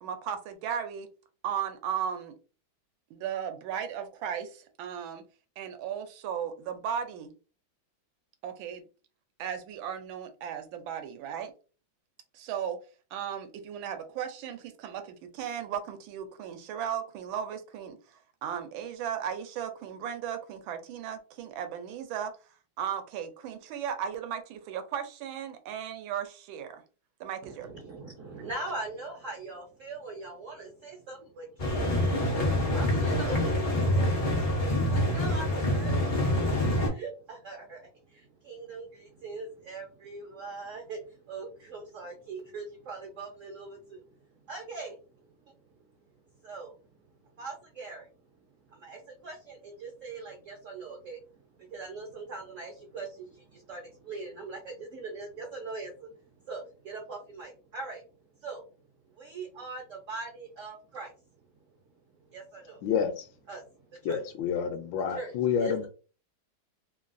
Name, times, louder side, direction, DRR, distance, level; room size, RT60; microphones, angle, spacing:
voice 1, 0.0-1.1 1.4-2.3 3.1-5.2 5.6-7.3 8.4-8.8 9.4-11.5 12.3-12.8 13.1-18.0 18.4-22.3 22.8-26.8 27.2-27.7, right 8 dB, 85° right, 7 dB, 1.4 m, -36 dB
voice 2, 27.4-31.9 32.3-33.8 34.8-36.0 36.5-44.0 44.4-45.0 46.4-46.7 47.4-48.1 48.7-58.0 58.4-58.6 59.2-61.1 62.3-62.9 63.5-64.2 65.1-65.9, right 3 dB, 65° right, 1 dB, 0.7 m, -41 dB
sound 1, 31.6-36.9, left 1 dB, 60° left, 0.3 m, -26 dB
voice 3, 62.8-63.3 64.0-65.9, left 7 dB, 80° left, 8 dB, 1.3 m, -29 dB
3.4 x 2.3 x 2.5 m, 0.36 s
omnidirectional pair, 2.1 m